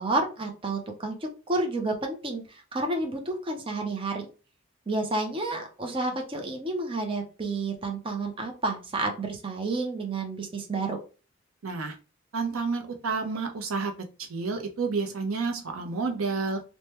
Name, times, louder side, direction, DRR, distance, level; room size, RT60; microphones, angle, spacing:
voice 1, 0.0-4.3 4.9-11.0, right 2 dB, 25° right, 2 dB, 0.5 m, -30 dB
voice 2, 11.6-12.0 12.3-13.9 14.2-16.6, right 4 dB, 80° right, 5 dB, 0.6 m, -30 dB
3.3 x 2.1 x 2.9 m, 0.34 s
head